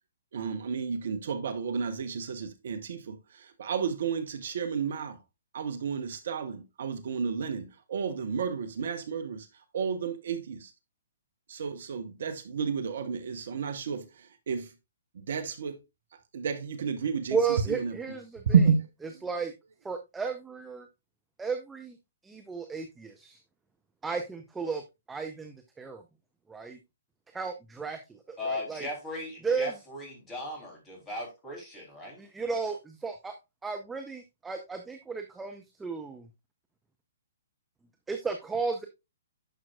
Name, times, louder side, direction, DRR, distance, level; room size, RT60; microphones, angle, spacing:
voice 1, 0.3-5.2 5.5-9.5 9.7-10.7 11.5-14.7 15.1-15.8 16.3-17.4 17.7-18.0 18.5-18.8 19.1-19.2, right 6 dB, 55° right, 0.9 m, -31 dB
voice 2, 17.3-18.6 19.2-19.5 19.8-20.9 21.4-22.0 22.2-23.4 24.0-24.8 25.1-26.0 26.5-26.8 27.3-28.9 29.4-29.7 32.2-33.3 33.6-36.3 38.1-38.9, right 5 dB, 10° right, 0.7 m, -34 dB
voice 3, 28.4-32.2, left 2 dB, 15° left, 3.3 m, -37 dB
10.5 x 6.1 x 2.4 m
figure-of-eight pair, 125°, 0 cm